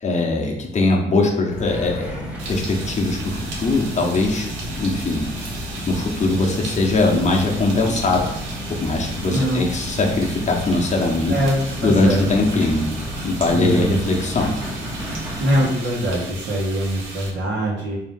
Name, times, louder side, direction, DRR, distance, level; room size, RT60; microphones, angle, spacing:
voice 1, 0.0-2.1 2.5-5.2 5.9-8.3 8.7-11.4 11.8-12.9 13.2-14.5, left 2 dB, 35° left, 1 dB, 0.8 m, -21 dB
sound 1, 1.5-15.7, equal, 5° right, 0.9 m, -32 dB
sound 2, 2.4-17.3, right 2 dB, 90° right, 0.8 m, -35 dB
voice 2, 9.2-9.6 11.3-12.2 13.5-13.9 15.4-18.0, right 1 dB, 65° right, -4 dB, 1.1 m, -22 dB
3.7 x 2.7 x 3.6 m, 0.84 s
cardioid pair, 90°, 20 cm